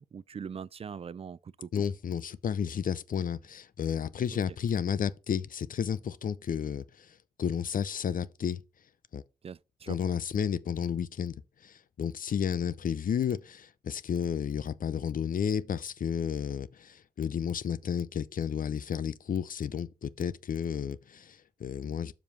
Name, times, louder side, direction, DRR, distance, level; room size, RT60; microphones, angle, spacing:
voice 1, 0.0-1.7 9.4-10.0, right 6 dB, 40° right, 0.4 m, -41 dB
voice 2, 1.7-8.6 9.1-9.2 9.9-22.1, left 8 dB, 65° left, 0.6 m, -32 dB
7.4 x 5.4 x 4.5 m
cardioid pair, 75°, 15 cm